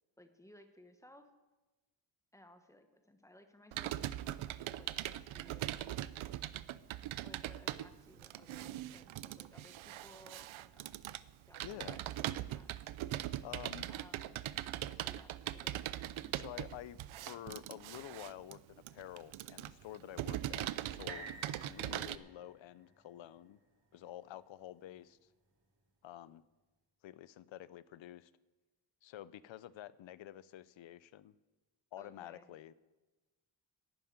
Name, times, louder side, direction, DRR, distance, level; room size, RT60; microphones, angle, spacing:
voice 1, 0.2-1.3 2.3-5.8 7.2-11.0 11.5-11.6 11.9-12.7 13.9-14.4 15.0-15.8 16.2-16.5 32.0-32.6, left 1 dB, 5° left, 7 dB, 1.0 m, -61 dB
Computer keyboard, 3.7-22.2, right 13 dB, 85° right, 0.6 m, -41 dB
voice 2, 11.6-12.0 13.4-13.9 16.3-17.0 17.2-18.6 18.9-21.3 21.6-23.6 23.9-25.2 26.0-26.4 27.0-28.3 29.0-31.3 31.9-32.7, left 13 dB, 75° left, 17 dB, 0.7 m, -49 dB
sound 1, 21.1-25.0 25.6-25.7, right 3 dB, 55° right, 3.2 m, -53 dB
11.5 x 9.4 x 9.5 m, 1.2 s
wide cardioid pair, 175°, 47 cm